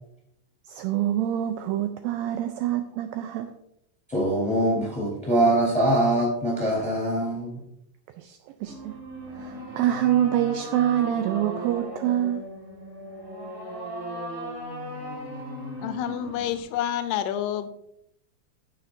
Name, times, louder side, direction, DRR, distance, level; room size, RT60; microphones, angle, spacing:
voice 1, 0.7-3.5 8.2-9.0 9.3-12.4, right 12 dB, 85° right, 8 dB, 2.1 m, -26 dB
voice 2, 4.1-7.6, right 1 dB, ahead, -4 dB, 3.1 m, -23 dB
sound 1, 8.6-16.6, equal, 20° right, 2.7 m, -37 dB
voice 3, 15.8-17.7, left 10 dB, 90° left, 10 dB, 2.8 m, -28 dB
15.0 x 6.6 x 2.6 m, 0.78 s
omnidirectional pair, 4.6 m